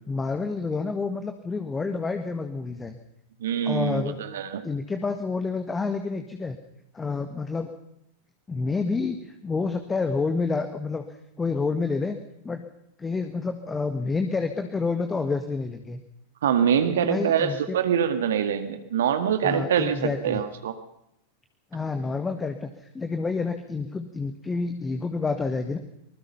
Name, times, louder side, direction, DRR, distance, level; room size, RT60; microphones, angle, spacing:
voice 1, 0.1-3.0 3.6-4.2 4.6-6.6 6.9-7.7 8.5-11.1 11.4-12.2 12.4-12.6 13.0-16.0 16.9-17.7 19.4-20.4 21.7-22.7 22.9-25.8, left 4 dB, 15° left, 7 dB, 1.7 m, -28 dB
voice 2, 3.4-4.0 4.3-4.6 16.4-20.8, right 8 dB, 60° right, 8 dB, 1.9 m, -24 dB
24.5 x 21.0 x 5.7 m, 0.81 s
figure-of-eight pair, 90°, 0 cm